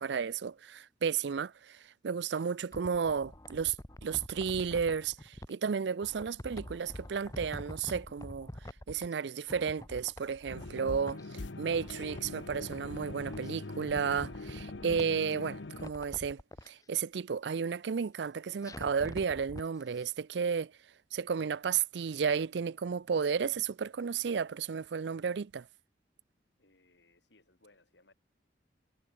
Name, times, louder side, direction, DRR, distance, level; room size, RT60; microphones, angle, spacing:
voice 1, 0.0-3.7 4.0-8.5 8.9-11.2 11.6-16.4 16.7-20.7 21.1-25.7, right 6 dB, 70° right, 0.4 m, -33 dB
sound 1, 2.4-5.5 6.0-9.2 9.5-11.3 11.6-13.5 13.8-15.3 15.7-16.7 18.6-19.7 20.0-20.1, left 1 dB, 20° left, 1.1 m, -46 dB
sound 2, 10.5-15.9, left 2 dB, 90° left, 1.0 m, -43 dB
voice 2, 26.6-28.1, left 2 dB, 75° left, 6.6 m, -65 dB
head